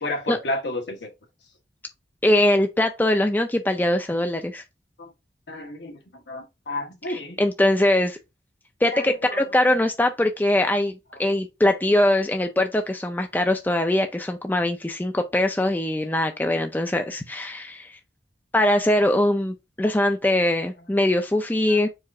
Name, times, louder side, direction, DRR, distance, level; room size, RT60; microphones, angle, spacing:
voice 1, 0.0-1.1 5.0-5.1 5.5-7.4 8.9-9.4 21.7-21.9, left 2 dB, 75° left, 1.2 m, -32 dB
voice 2, 2.2-4.6 7.1-8.2 8.8-17.9 18.5-21.9, left 1 dB, 10° left, 0.4 m, -22 dB
4.7 x 2.5 x 4.2 m
head